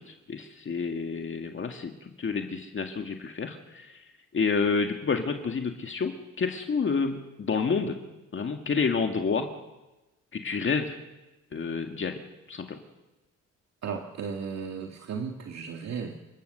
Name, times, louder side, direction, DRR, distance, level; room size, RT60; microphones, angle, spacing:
voice 1, 0.0-4.0 4.3-8.0 8.3-9.5 10.3-11.0 11.5-12.2 12.5-12.8, left 5 dB, 40° left, 4 dB, 2.0 m, -29 dB
voice 2, 13.8-16.1, right 6 dB, 60° right, 3 dB, 1.9 m, -35 dB
28.5 x 17.0 x 6.7 m, 1.1 s
cardioid pair, 90°, 30 cm